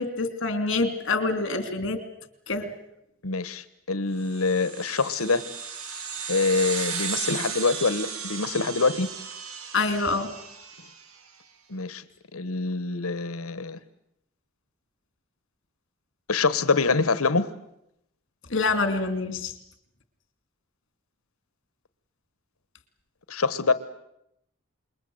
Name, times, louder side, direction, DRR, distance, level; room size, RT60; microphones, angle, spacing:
voice 1, 0.0-2.0 2.5-2.7 9.7-10.3 18.5-19.5, left 3 dB, 60° left, 9 dB, 2.9 m, -26 dB
voice 2, 3.2-5.4 6.3-9.1 11.7-12.0 12.3-13.8 16.3-17.5 23.3-23.7, left 4 dB, 85° left, 14 dB, 1.2 m, -25 dB
sound 1, 4.3-11.1, right 6 dB, 90° right, 1.8 m, -35 dB
27.5 x 22.0 x 7.9 m, 0.80 s
head